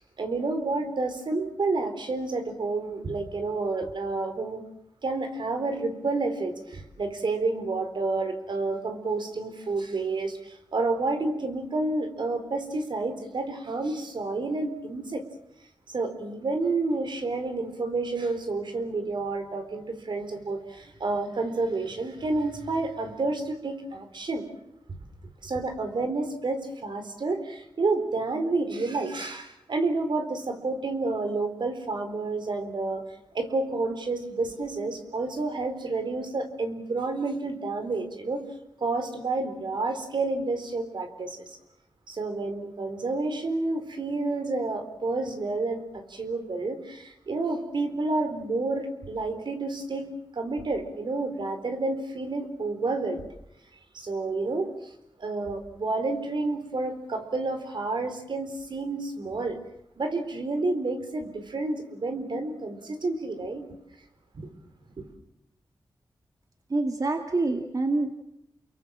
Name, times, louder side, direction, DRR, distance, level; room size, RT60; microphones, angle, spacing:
voice 1, 0.0-4.6 5.0-15.2 15.9-24.5 25.4-33.1 33.3-38.4 38.8-41.6 42.1-50.1 50.3-53.2 53.9-54.9 55.2-59.6 60.0-63.7 64.3-64.5 65.0-65.1, right 3 dB, 70° right, 7 dB, 4.1 m, -30 dB
voice 2, 66.7-68.1, right 2 dB, 45° right, 5 dB, 2.3 m, -26 dB
30.0 x 22.5 x 7.5 m, 0.80 s
wide cardioid pair, 85°, 8 cm